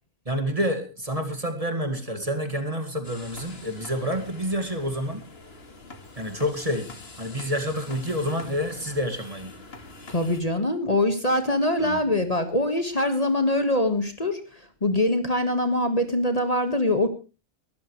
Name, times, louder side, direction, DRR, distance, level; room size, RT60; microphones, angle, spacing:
voice 1, 0.3-5.2 6.2-6.9 7.2-9.5 11.8-12.0, equal, 25° right, 6 dB, 2.2 m, -28 dB
sound 1, 3.0-10.4, left 3 dB, 50° left, 2.4 m, -45 dB
voice 2, 10.1-17.1, left 1 dB, 30° left, 8 dB, 1.7 m, -23 dB
21.0 x 14.0 x 3.2 m, 0.31 s
omnidirectional pair, 1.3 m